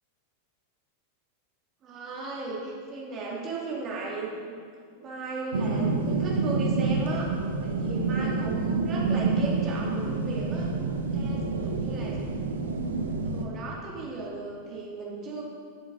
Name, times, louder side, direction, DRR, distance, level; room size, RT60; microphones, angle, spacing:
voice 1, 1.8-4.5 5.0-7.3 7.6-10.7 11.1-12.2 13.2-15.4, right 3 dB, 30° right, -4 dB, 2.5 m, -36 dB
sound 1, 5.5-13.4, right 3 dB, 70° right, 0.8 m, -28 dB
11.5 x 7.8 x 4.0 m, 2.1 s
figure-of-eight pair, 90°, 0 cm